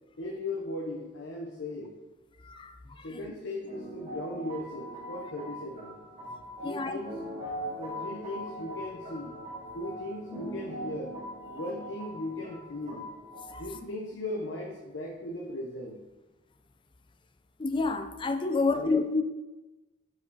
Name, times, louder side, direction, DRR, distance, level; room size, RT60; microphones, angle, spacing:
voice 1, 0.2-1.9 3.0-6.0 6.6-7.2 7.8-9.4 9.7-11.2 11.5-13.1 13.6-16.0 18.7-18.9, left 1 dB, 75° left, -1 dB, 0.8 m, -37 dB
voice 2, 2.4-3.3 6.6-7.0 13.5-13.6 17.6-19.2, left 3 dB, 25° left, 8 dB, 0.4 m, -29 dB
sound 1, 3.7-13.7, equal, 30° right, 1.3 m, -41 dB
5.1 x 4.9 x 4.1 m, 1.1 s
head